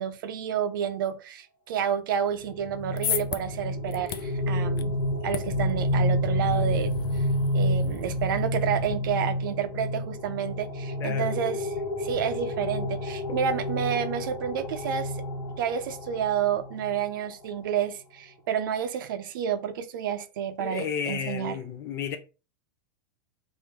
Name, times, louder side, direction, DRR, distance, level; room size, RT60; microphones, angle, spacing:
voice 1, 0.0-5.0 5.2-7.2 7.5-15.1 15.6-21.6, right 8 dB, 65° right, 0.6 m, -30 dB
sound 1, 2.4-17.1, equal, 45° left, 1.4 m, -29 dB
sound 2, 2.6-9.0, left 9 dB, 85° left, 0.5 m, -38 dB
voice 2, 11.0-11.3 13.3-13.4 20.6-22.2, left 8 dB, 20° left, 0.4 m, -32 dB
3.4 x 2.6 x 4.4 m
supercardioid pair, 170°, 12 cm